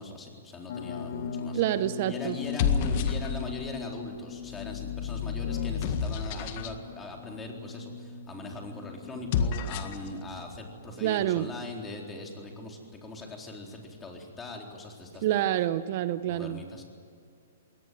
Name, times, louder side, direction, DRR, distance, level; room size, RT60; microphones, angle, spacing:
voice 1, 0.0-1.6 2.1-15.5 16.3-16.8, left 2 dB, 15° left, 1 dB, 4.0 m, -41 dB
sound 1, 0.7-11.6, left 5 dB, 60° left, 2.0 m, -41 dB
sound 2, 1.1-1.5 2.4-3.7 4.5-6.8 9.1-10.1, left 7 dB, 45° left, 1.7 m, -30 dB
voice 2, 1.5-2.4 11.0-11.5 15.2-16.6, right 13 dB, 50° right, 13 dB, 0.8 m, -27 dB
22.0 x 18.5 x 9.3 m, 2.4 s
hypercardioid pair, 140°, 0 cm